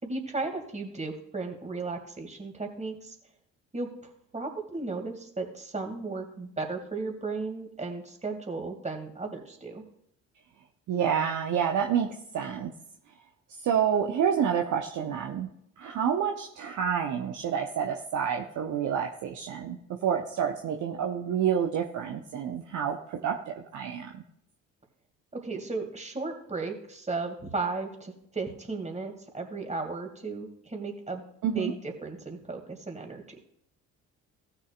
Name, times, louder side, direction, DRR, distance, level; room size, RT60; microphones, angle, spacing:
voice 1, 0.0-3.2 3.7-9.8 25.3-31.2 31.5-33.4, right 3 dB, 15° right, 3 dB, 2.6 m, -35 dB
voice 2, 10.9-12.7 13.6-15.5 15.8-24.2 31.4-31.7, right 8 dB, 50° right, 2 dB, 1.1 m, -28 dB
18.0 x 6.7 x 2.5 m, 0.74 s
figure-of-eight pair, 50°, 40 cm